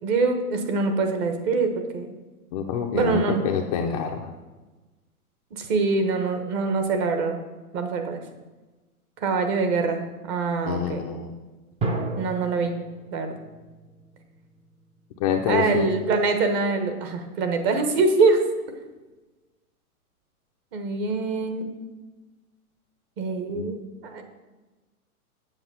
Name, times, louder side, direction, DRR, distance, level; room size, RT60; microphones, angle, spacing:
voice 1, 0.0-2.1 2.9-3.5 5.5-7.4 7.7-8.2 9.2-11.0 12.2-12.7 13.1-13.3 15.5-18.4 20.7-21.7 23.2-23.8 24.0-24.2, right 4 dB, 30° right, 6 dB, 1.3 m, -24 dB
voice 2, 2.5-4.3 10.7-11.3 15.2-15.9 23.5-23.8, left 7 dB, 25° left, 1 dB, 0.5 m, -26 dB
sound 1, 11.8-15.3, right 2 dB, 15° right, 0.7 m, -33 dB
8.0 x 7.2 x 5.7 m, 1.2 s
hypercardioid pair, 135°, 45 cm